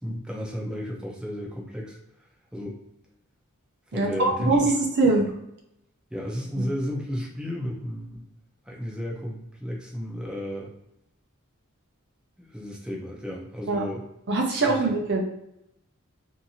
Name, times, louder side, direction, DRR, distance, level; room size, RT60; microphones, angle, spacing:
voice 1, 0.0-2.0 2.5-2.8 3.9-4.7 5.1-5.2 6.1-8.2 8.7-10.7 12.4-14.0 14.7-14.8, equal, 5° right, -3 dB, 0.6 m, -33 dB
voice 2, 3.9-5.2 6.6-6.7 13.7-13.8 14.3-15.2, right 3 dB, 50° right, 1 dB, 0.6 m, -22 dB
2.7 x 2.6 x 2.7 m, 0.83 s
head